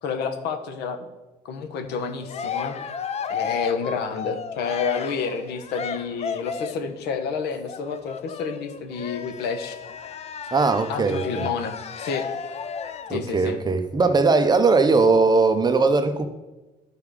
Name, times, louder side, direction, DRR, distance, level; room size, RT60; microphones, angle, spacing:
voice 1, 0.0-1.1 1.4-2.8 3.3-9.8 10.9-12.3 13.1-13.6, left 5 dB, 80° left, 1.1 m, -29 dB
Cheering, 1.9-6.9 7.7-13.2, left 7 dB, 40° left, 0.6 m, -33 dB
voice 2, 10.5-11.5 13.1-16.3, right 3 dB, 25° right, 0.7 m, -19 dB
11.5 x 4.9 x 4.9 m
cardioid pair, 110°, 17 cm